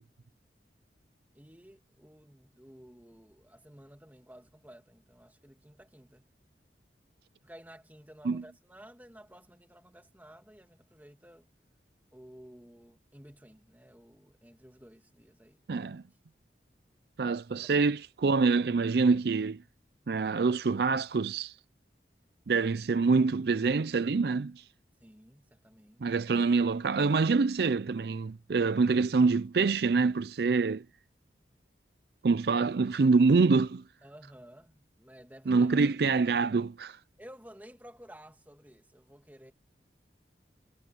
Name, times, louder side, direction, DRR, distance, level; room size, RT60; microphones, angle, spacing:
voice 1, 1.3-6.3 7.4-11.5 12.1-15.6 17.6-17.7 25.0-26.1 34.0-35.8 37.2-39.5, equal, 10° right, 2.5 m, -53 dB
voice 2, 15.7-16.0 17.2-19.6 20.1-21.5 22.5-24.6 26.0-30.8 32.2-33.8 35.5-37.0, right 4 dB, 60° right, 0.4 m, -26 dB
head